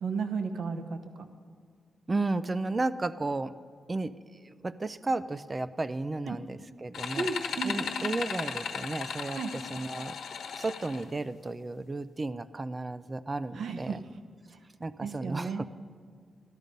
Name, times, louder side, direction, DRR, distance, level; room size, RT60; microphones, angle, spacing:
voice 1, 0.0-1.3 6.2-6.4 7.2-7.8 9.4-9.5 13.6-14.0 15.0-15.7, right 5 dB, 75° right, 7 dB, 1.0 m, -33 dB
voice 2, 2.1-3.5 3.9-4.1 4.4-7.3 7.6-10.2 10.5-14.0 14.8-15.6, right 2 dB, 25° right, 15 dB, 0.4 m, -33 dB
sound 1, 6.9-11.0, left 6 dB, 90° left, 1.1 m, -36 dB
14.0 x 12.5 x 5.3 m, 2.1 s
wide cardioid pair, 145°, 0 cm